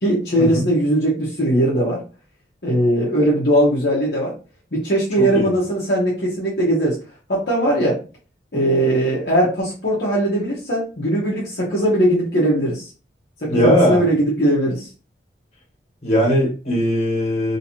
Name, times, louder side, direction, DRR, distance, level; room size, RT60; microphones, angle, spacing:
voice 1, 0.0-2.0 2.6-4.3 4.7-7.0 7.3-8.0 8.5-12.9 13.4-14.9, right 1 dB, 60° left, 1.1 m, -19 dB
voice 2, 5.2-5.5 13.5-14.0 16.0-17.6, equal, 40° left, 1.7 m, -19 dB
3.0 x 2.9 x 3.0 m
head